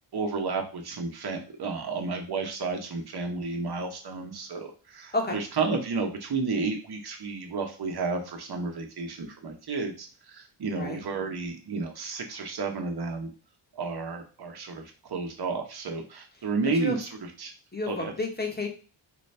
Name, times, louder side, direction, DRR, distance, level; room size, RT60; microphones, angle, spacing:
voice 1, 0.1-13.3 13.7-17.1 17.4-17.5 17.9-18.1, right 4 dB, 55° right, 3 dB, 1.1 m, -32 dB
voice 2, 17.7-18.7, left 2 dB, 20° left, 1 dB, 1.2 m, -30 dB
4.5 x 2.8 x 3.3 m, 0.37 s
cardioid pair, 90°, 46 cm